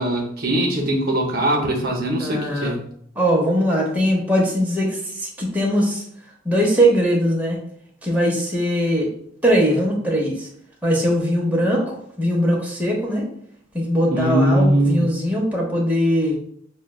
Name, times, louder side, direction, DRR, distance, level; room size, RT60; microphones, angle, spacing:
voice 1, 0.0-2.8 14.1-15.1, right 1 dB, 50° right, 0 dB, 0.7 m, -21 dB
voice 2, 2.2-2.7 3.2-6.0 6.4-7.6 8.0-9.1 9.4-10.5 10.8-13.3 13.7-16.4, equal, 10° right, -3 dB, 0.8 m, -20 dB
6.4 x 2.2 x 2.3 m, 0.67 s
head